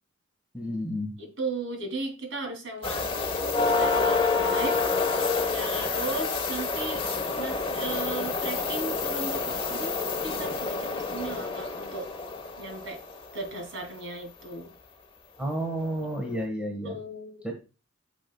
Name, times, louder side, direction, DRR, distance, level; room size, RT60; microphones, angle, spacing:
voice 1, 0.5-1.1 15.4-17.0 17.4-17.5, equal, 5° right, 2 dB, 1.4 m, -31 dB
voice 2, 1.2-3.1 3.6-4.8 5.5-7.1 7.3-12.1 12.6-13.0 13.3-14.7 16.9-17.4, right 2 dB, 65° right, 4 dB, 2.8 m, -36 dB
sound 1, 2.8-13.5 15.5-15.6 16.1-16.3, left 4 dB, 25° left, 1.0 m, -28 dB
10.0 x 6.0 x 2.3 m, 0.32 s
head